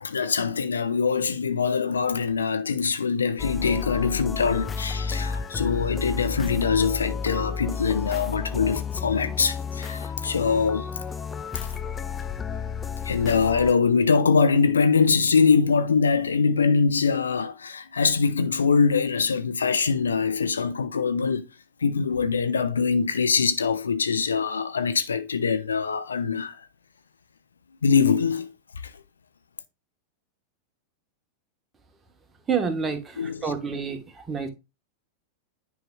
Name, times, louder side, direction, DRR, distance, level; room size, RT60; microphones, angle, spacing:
voice 1, 0.0-10.9 13.0-21.5 21.8-26.6 27.8-28.5 33.2-33.4, left 5 dB, 70° left, 0.5 m, -23 dB
sound 1, 3.4-13.7, left 5 dB, 15° left, 0.3 m, -32 dB
voice 2, 32.5-34.5, right 5 dB, 15° right, 1.2 m, -28 dB
10.0 x 4.8 x 2.3 m
figure-of-eight pair, 90°, 0 cm